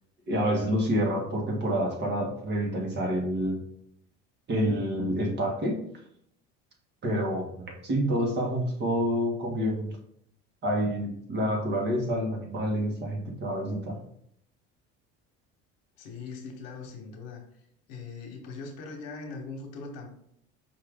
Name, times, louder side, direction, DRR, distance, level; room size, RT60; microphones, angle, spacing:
voice 1, 0.3-3.6 4.5-5.7 7.0-9.9 10.6-14.0, equal, 35° right, 0 dB, 1.5 m, -28 dB
voice 2, 16.0-17.4 17.9-20.1, left 4 dB, 90° left, 3 dB, 1.0 m, -40 dB
5.3 x 2.6 x 3.5 m, 0.70 s
supercardioid pair, 105°, 30 cm